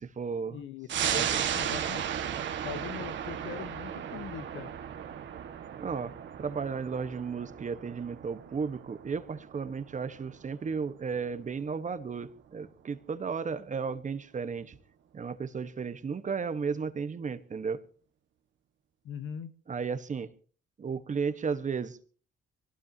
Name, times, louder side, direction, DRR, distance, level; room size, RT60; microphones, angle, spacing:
voice 1, 0.0-0.6 1.1-1.4 5.8-6.1 6.4-14.8 15.1-17.8 19.7-20.3 20.8-22.0, right 5 dB, 40° right, 11 dB, 1.4 m, -34 dB
voice 2, 0.5-1.3 1.5-2.0 2.6-4.7 19.0-19.5, left 9 dB, 80° left, 11 dB, 1.2 m, -41 dB
sound 1, 0.9-11.9 12.3-12.4, right 9 dB, 70° right, 1.8 m, -36 dB
24.5 x 18.0 x 2.9 m, 0.41 s
cardioid pair, 90°, 20 cm